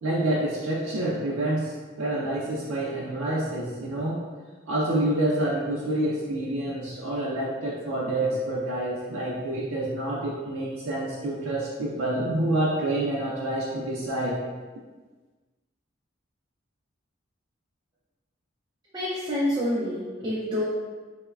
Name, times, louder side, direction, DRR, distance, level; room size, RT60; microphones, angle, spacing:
voice 1, 0.0-1.7 2.0-4.2 4.7-14.4, right 1 dB, 90° right, -5 dB, 0.4 m, -27 dB
voice 2, 18.9-20.6, left 1 dB, 20° right, -8 dB, 0.4 m, -27 dB
3.0 x 2.0 x 2.3 m, 1.3 s
head